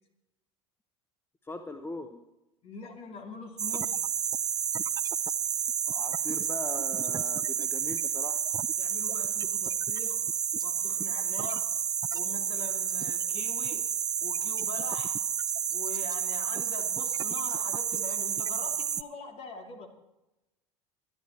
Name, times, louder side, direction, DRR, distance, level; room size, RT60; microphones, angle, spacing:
voice 1, 1.4-2.2 5.9-8.4, left 2 dB, 15° left, 8 dB, 1.0 m, -40 dB
voice 2, 2.6-4.0 6.2-6.4 8.8-10.2 10.5-11.7 12.1-13.8 14.2-15.2 15.7-19.9, left 4 dB, 40° left, 4 dB, 2.8 m, -43 dB
sound 1, 3.6-19.0, right 8 dB, 25° right, 0.5 m, -30 dB
23.0 x 11.0 x 4.4 m, 0.95 s
figure-of-eight pair, 75°, 16 cm